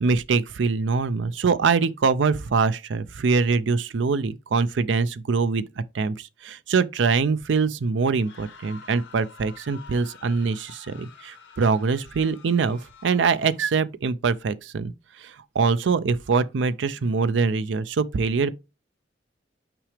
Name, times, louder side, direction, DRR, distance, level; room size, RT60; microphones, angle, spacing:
voice 1, 0.0-5.7 5.9-14.9 15.2-18.5, right 4 dB, 80° right, 0.5 m, -23 dB
sound 1, 8.1-13.8, left 5 dB, 75° left, 1.8 m, -49 dB
5.9 x 4.9 x 3.3 m
head